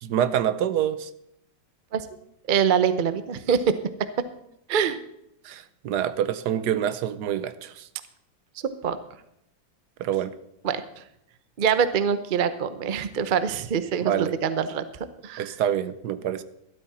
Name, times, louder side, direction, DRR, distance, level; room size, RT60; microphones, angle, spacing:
voice 1, 0.0-1.1 5.4-7.9 10.0-10.3 14.0-14.3 15.4-16.4, right 10 dB, 70° right, 13 dB, 1.1 m, -26 dB
voice 2, 2.5-3.8 4.7-5.0 8.6-9.0 10.6-11.0 11.6-14.8 15.2-15.5, right 7 dB, 85° right, 12 dB, 0.4 m, -24 dB
13.0 x 12.0 x 4.2 m, 0.78 s
omnidirectional pair, 2.0 m